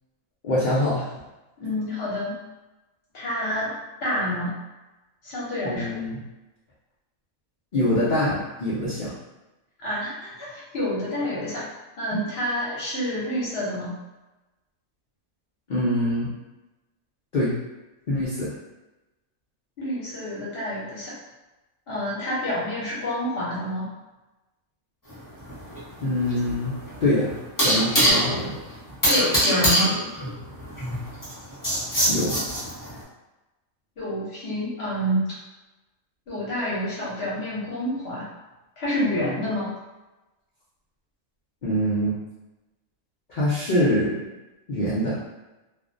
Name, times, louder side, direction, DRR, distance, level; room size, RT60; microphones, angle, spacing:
voice 1, 0.4-1.1 5.6-6.2 7.7-9.1 12.1-12.2 15.7-16.3 17.3-17.5 18.1-18.6 26.0-27.3 27.6-28.5 32.1-32.4 41.6-42.2 43.3-44.3 44.7-45.2, left 1 dB, 75° left, -8 dB, 0.4 m, -24 dB
voice 2, 1.6-2.4 3.1-3.7 4.0-4.5 5.2-6.0 9.8-11.7 12.0-14.0 19.8-21.1 21.9-23.9 29.0-30.0 34.0-35.3 36.3-38.3 38.8-39.7, equal, 55° left, -7 dB, 0.8 m, -28 dB
sound 1, 25.1-33.0, equal, 20° left, 0.7 m, -24 dB
2.4 x 2.0 x 2.5 m, 1.1 s
omnidirectional pair, 1.5 m